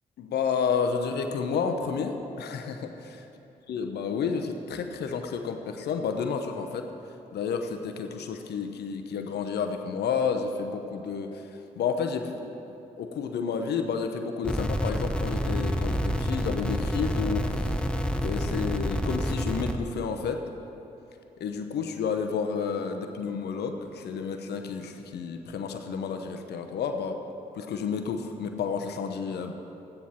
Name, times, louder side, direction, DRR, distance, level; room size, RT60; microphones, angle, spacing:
voice 1, 0.2-3.2 3.7-6.9 7.3-11.5 11.8-12.5 13.0-17.7 18.2-20.4 21.4-27.2 27.5-29.5, left 6 dB, 65° left, 6 dB, 0.9 m, -31 dB
sound 1, 14.4-19.7, equal, 5° left, 0.9 m, -28 dB
13.0 x 9.5 x 4.3 m, 2.8 s
hypercardioid pair, 40°, 18 cm